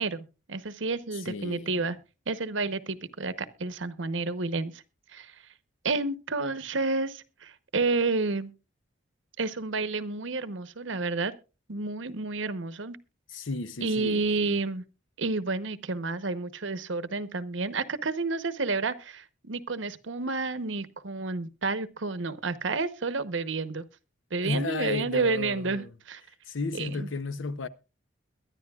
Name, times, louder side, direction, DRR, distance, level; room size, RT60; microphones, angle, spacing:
voice 1, 0.0-2.0 2.3-4.8 5.1-5.3 5.8-8.5 9.4-11.3 11.7-13.0 13.8-14.8 15.2-23.9 24.3-26.2 26.7-27.1, right 3 dB, 75° right, 0.9 m, -30 dB
voice 2, 1.2-1.9 13.3-14.5 24.4-25.9 26.5-27.7, left 3 dB, 80° left, 0.8 m, -33 dB
22.5 x 10.5 x 2.4 m
head